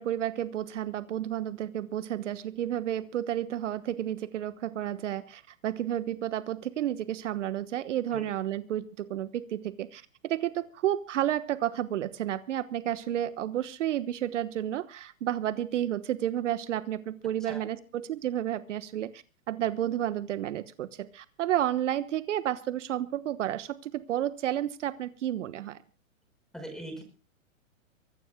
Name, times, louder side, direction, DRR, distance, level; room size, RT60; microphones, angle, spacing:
voice 1, 0.0-25.8, right 11 dB, 65° right, 13 dB, 1.2 m, -31 dB
voice 2, 26.5-27.0, right 1 dB, ahead, 4 dB, 5.6 m, -40 dB
24.5 x 17.5 x 2.2 m, 0.35 s
hypercardioid pair, 130°, 40 cm